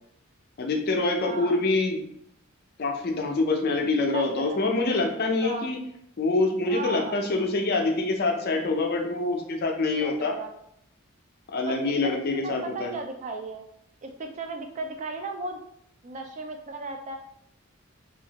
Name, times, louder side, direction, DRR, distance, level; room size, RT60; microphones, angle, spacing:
voice 1, 0.6-2.0 2.8-5.8 6.2-10.3 11.5-12.9, left 3 dB, 50° left, 2 dB, 0.4 m, -25 dB
voice 2, 1.2-1.6 4.1-4.6 5.4-5.7 6.7-7.2 10.0-10.5 11.7-13.7 14.0-15.6 16.0-17.2, right 3 dB, 35° right, 5 dB, 0.3 m, -35 dB
2.7 x 2.4 x 2.8 m, 0.72 s
head